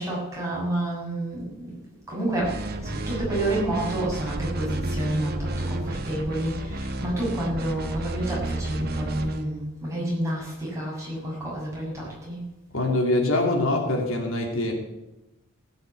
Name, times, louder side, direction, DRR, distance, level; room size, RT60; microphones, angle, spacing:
voice 1, 0.0-1.8 2.1-12.4, right 1 dB, 15° right, -6 dB, 6.6 m, -29 dB
sound 1, 2.4-9.5, right 2 dB, 45° right, 1.4 m, -31 dB
voice 2, 12.7-14.7, left 2 dB, 65° left, 2 dB, 2.8 m, -24 dB
15.5 x 7.9 x 8.3 m, 0.94 s
head